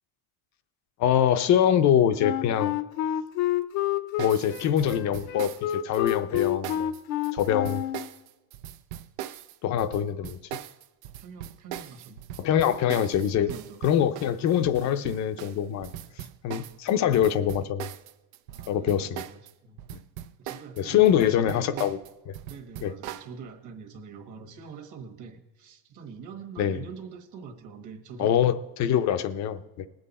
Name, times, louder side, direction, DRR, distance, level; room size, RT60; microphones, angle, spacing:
voice 1, 1.0-2.8 4.2-6.9 7.3-7.8 9.6-10.4 12.4-13.5 13.8-15.9 16.4-17.9 18.7-19.2 20.8-22.0 22.3-22.4 22.8-22.9 26.6-26.8 28.2-29.9, left 9 dB, 35° left, 11 dB, 0.6 m, -24 dB
Wind instrument woodwind instrument, 2.2-8.1, left 12 dB, 75° left, 0.9 m, -28 dB
sound 1, 4.2-19.5 19.8-23.3, right 11 dB, 75° right, 0.8 m, -40 dB
voice 2, 11.2-12.2 13.4-13.8 16.0-16.1 18.5-19.8 20.4-21.9 22.5-28.4, right 6 dB, 40° right, 5 dB, 1.5 m, -44 dB
20.0 x 7.8 x 4.1 m, 1.1 s
cardioid pair, 165°, 47 cm